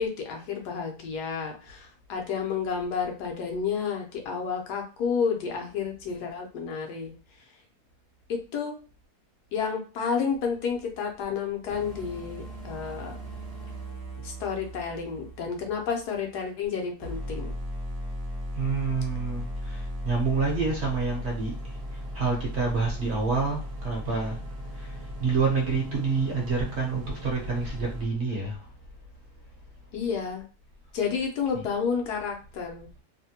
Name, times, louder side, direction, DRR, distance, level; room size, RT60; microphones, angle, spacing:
voice 1, 0.0-7.1 8.3-8.8 9.5-13.2 14.2-17.5 29.9-30.4 30.9-32.9, left 6 dB, 80° left, 1.3 m, -30 dB
sound 1, 11.7-16.6 17.0-28.0, equal, 25° right, 0.5 m, -37 dB
voice 2, 18.5-24.4 24.7-28.7 31.5-31.6, right 4 dB, 50° right, 0.9 m, -28 dB
3.1 x 2.1 x 2.8 m
omnidirectional pair, 1.7 m